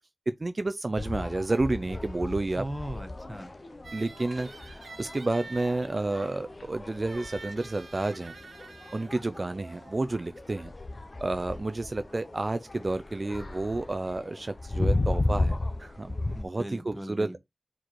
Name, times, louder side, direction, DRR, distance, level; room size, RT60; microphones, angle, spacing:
voice 1, 0.4-2.6 3.9-8.3 8.9-10.7 11.2-16.2 16.4-17.3, right 2 dB, 40° right, 0.5 m, -30 dB
sound 1, 1.0-16.4, left 2 dB, 45° left, 0.9 m, -35 dB
voice 2, 2.6-3.5 16.3-17.4, right 1 dB, ahead, 1.4 m, -38 dB
sound 2, 3.8-12.5, right 3 dB, 80° right, 1.2 m, -49 dB
4.7 x 4.6 x 4.6 m
wide cardioid pair, 85°, 0 cm